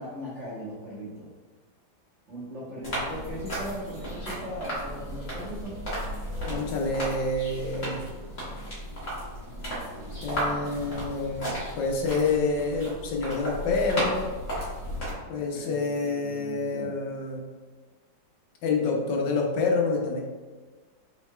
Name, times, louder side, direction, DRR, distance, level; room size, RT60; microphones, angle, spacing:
voice 1, 0.0-1.3 2.3-5.8 15.3-17.0, equal, 45° right, -10 dB, 1.2 m, -39 dB
sound 1, 2.8-15.1, equal, 40° left, 1.9 m, -34 dB
voice 2, 6.5-8.0 10.2-11.5 11.8-14.3 15.3-17.4 18.6-20.2, left 3 dB, 70° left, 0 dB, 1.3 m, -27 dB
5.9 x 3.8 x 2.2 m, 1.4 s
omnidirectional pair, 2.2 m